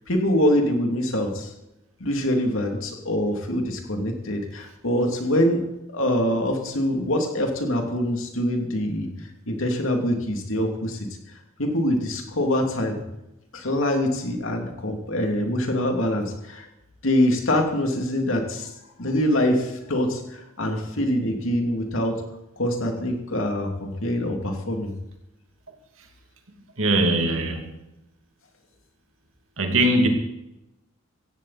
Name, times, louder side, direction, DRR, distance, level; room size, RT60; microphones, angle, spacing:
voice 1, 0.1-1.5 2.0-5.6 5.9-9.1 9.5-11.1 11.6-13.0 13.5-16.7 17.0-18.7 19.0-22.2 22.6-24.9, left 1 dB, 75° left, 3 dB, 2.9 m, -24 dB
voice 2, 26.8-27.7 29.6-30.1, right 1 dB, 80° right, 3 dB, 2.7 m, -21 dB
16.0 x 16.0 x 4.3 m, 0.92 s
head